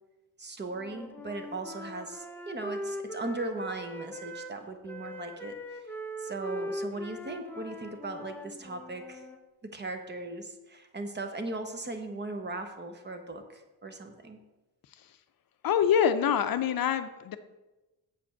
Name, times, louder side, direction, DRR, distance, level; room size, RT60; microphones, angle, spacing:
voice 1, 0.4-5.6 6.2-9.3 9.6-14.4, right 2 dB, 25° right, 6 dB, 0.9 m, -38 dB
Wind instrument woodwind instrument, 0.7-4.5 4.9-9.4, equal, 5° left, 0.7 m, -40 dB
voice 2, 15.6-17.4, left 8 dB, 60° left, 10 dB, 0.6 m, -25 dB
7.4 x 5.1 x 7.2 m, 1.1 s
wide cardioid pair, 155°, 40 cm